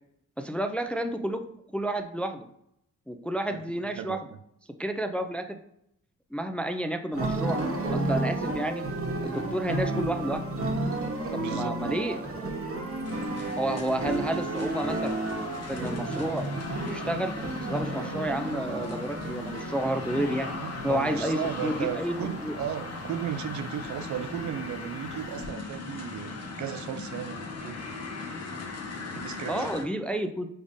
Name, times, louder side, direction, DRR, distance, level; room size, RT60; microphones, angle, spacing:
voice 1, 0.4-1.4 1.7-2.5 3.1-4.2 4.8-5.6 6.3-7.6 7.9-8.8 9.2-10.5 11.3-12.5 13.6-15.2 15.7-16.5 16.9-20.5 20.8-22.1 22.4-22.6 29.5-30.5, right 1 dB, 5° left, 7 dB, 0.3 m, -30 dB
voice 2, 3.5-4.4 11.4-11.8 20.6-27.8 29.1-29.7, right 10 dB, 65° right, 11 dB, 0.5 m, -36 dB
sound 1, 7.1-25.5, right 2 dB, 45° right, 1.1 m, -33 dB
sound 2, 12.5-15.9, right 4 dB, 25° right, 0.9 m, -47 dB
sound 3, 13.0-29.8, left 3 dB, 50° left, 0.9 m, -39 dB
5.1 x 3.5 x 2.6 m, 0.76 s
cardioid pair, 80°, 32 cm